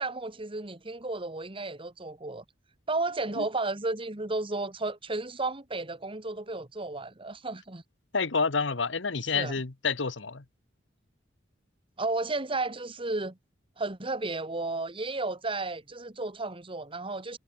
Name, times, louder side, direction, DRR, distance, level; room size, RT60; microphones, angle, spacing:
voice 1, 0.0-2.4 2.9-7.8 9.3-9.6 12.0-13.4 13.8-17.4, right 2 dB, 30° right, 1.8 m, -33 dB
voice 2, 8.1-10.4, left 4 dB, 80° left, 1.3 m, -28 dB
head